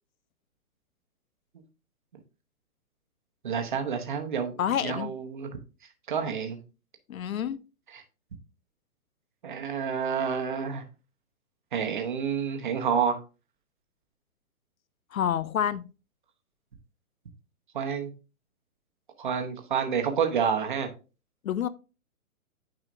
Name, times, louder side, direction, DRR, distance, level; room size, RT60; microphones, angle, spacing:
voice 1, 3.4-4.5 4.8-5.5 6.1-6.6 7.9-8.0 9.4-10.8 11.7-13.2 17.7-18.1 19.2-20.9, right 7 dB, 35° right, 1.0 m, -28 dB
voice 2, 4.6-5.2 7.1-7.6 15.1-15.9 21.4-21.7, left 9 dB, 70° left, 0.6 m, -28 dB
9.2 x 4.9 x 2.5 m
hypercardioid pair, 175°, 44 cm